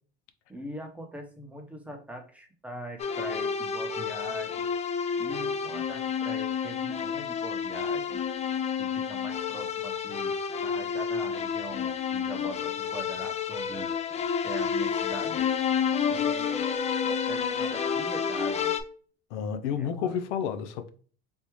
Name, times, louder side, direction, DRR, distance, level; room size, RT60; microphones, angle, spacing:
voice 1, 0.5-4.7 5.2-8.2 8.8-10.4 10.6-13.9 14.4-15.4 16.1-16.7 17.0-18.7 19.7-20.2, right 1 dB, 5° right, 0.9 m, -41 dB
sound 1, 3.0-18.8, left 7 dB, 20° left, 0.3 m, -30 dB
voice 2, 19.3-20.9, left 7 dB, 90° left, 0.6 m, -30 dB
3.5 x 2.6 x 3.0 m
supercardioid pair, 100°, 33 cm